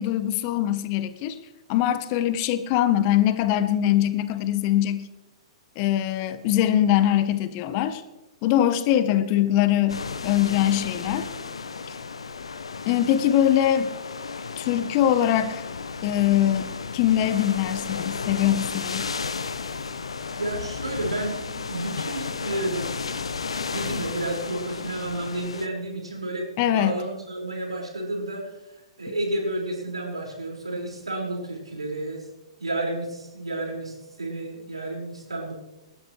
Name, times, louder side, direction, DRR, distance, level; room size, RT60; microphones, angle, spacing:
voice 1, 0.0-1.4 1.7-5.1 5.8-8.0 8.4-11.3 12.8-13.9 14.6-15.6 16.0-19.1 26.6-27.0, left 11 dB, 40° left, 12 dB, 1.2 m, -22 dB
sound 1, 9.9-25.7, left 5 dB, 75° left, 1.0 m, -33 dB
voice 2, 20.4-23.0 23.7-32.3 32.6-35.5, right 1 dB, 80° right, -2 dB, 5.5 m, -31 dB
28.5 x 13.0 x 3.3 m, 1.0 s
figure-of-eight pair, 110°, 3 cm